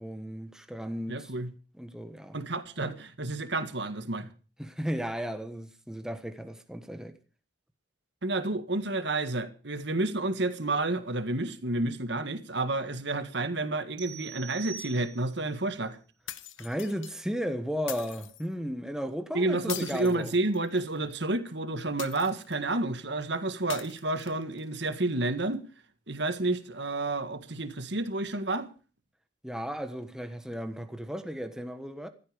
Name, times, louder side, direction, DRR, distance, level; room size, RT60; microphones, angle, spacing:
voice 1, 0.0-1.3 1.7-2.4 4.6-7.1 16.6-20.3 29.4-32.1, equal, 5° right, 1.3 m, -35 dB
voice 2, 1.1-1.5 2.3-4.3 8.2-16.0 19.3-25.6 26.1-28.7, right 2 dB, 60° right, 1.8 m, -30 dB
sound 1, 14.0-15.5, right 8 dB, 45° right, 3.9 m, -44 dB
sound 2, 16.3-17.1 17.9-18.5 19.7-20.9 22.0-22.6 23.7-24.6, left 12 dB, 80° left, 1.1 m, -41 dB
15.0 x 13.0 x 5.1 m
head